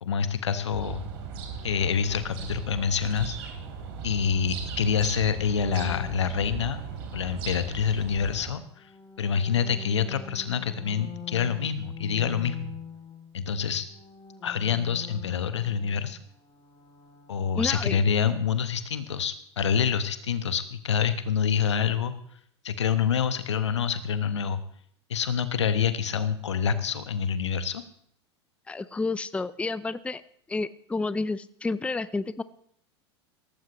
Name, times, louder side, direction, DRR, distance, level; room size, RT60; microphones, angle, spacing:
voice 1, 0.0-1.0 1.6-3.5 4.0-6.8 7.1-8.9 9.2-12.7 13.3-13.9 14.4-16.2 17.3-22.1 22.6-24.6 25.1-27.8, left 7 dB, 80° left, 11 dB, 1.1 m, -27 dB
sound 1, 0.7-8.5, right 6 dB, 60° right, 3.2 m, -37 dB
sound 2, 5.6-8.0 8.6-13.5 13.8-18.7, left 6 dB, 25° left, 2.7 m, -45 dB
voice 2, 17.6-18.0 28.7-30.2 30.5-32.4, left 3 dB, 10° left, 16 dB, 0.5 m, -30 dB
17.5 x 15.0 x 3.1 m, 0.65 s
hypercardioid pair, 85°, 15 cm